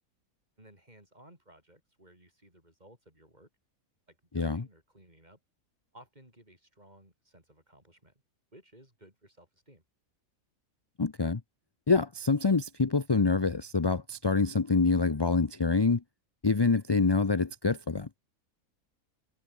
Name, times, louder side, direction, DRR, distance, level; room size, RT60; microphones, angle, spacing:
voice 1, 0.6-3.5 4.1-5.4 5.9-8.2 8.5-9.8, right 1 dB, 30° right, 7.7 m, -58 dB
voice 2, 11.0-11.4 11.9-16.0 16.4-18.1, left 4 dB, 25° left, 0.6 m, -26 dB
omnidirectional pair, 1.5 m